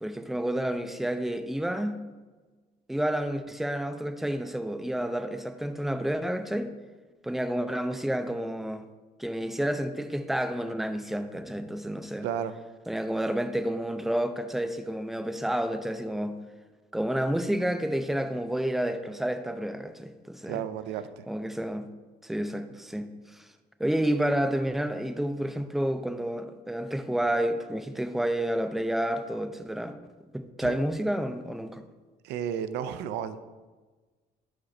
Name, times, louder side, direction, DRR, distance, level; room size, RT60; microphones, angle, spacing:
voice 1, 0.0-2.0 2.9-6.7 7.2-8.9 9.2-12.3 12.9-16.4 16.9-20.6 21.3-21.9 22.2-23.5 23.8-30.0 30.3-31.8, right 1 dB, ahead, 9 dB, 0.4 m, -30 dB
voice 2, 12.2-12.5 20.5-21.2 30.6-30.8 32.2-33.5, right 9 dB, 85° right, 12 dB, 0.4 m, -33 dB
5.0 x 5.0 x 4.2 m, 1.3 s
cardioid pair, 110°, 17 cm